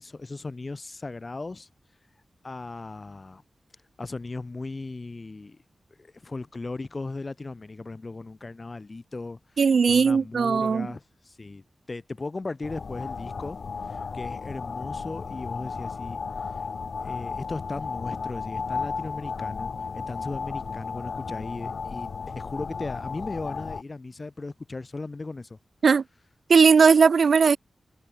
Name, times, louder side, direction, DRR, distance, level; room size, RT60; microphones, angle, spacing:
voice 1, 0.0-1.7 2.4-3.4 4.0-5.6 6.0-13.6 13.8-16.7 17.0-25.6, left 3 dB, 35° left, 3.4 m, -37 dB
voice 2, 9.6-10.9 25.8-26.0 26.5-27.6, right 5 dB, 70° right, 1.2 m, -18 dB
sound 1, 12.6-23.8, left 5 dB, 65° left, 0.8 m, -34 dB
open air
wide cardioid pair, 80°, 0 cm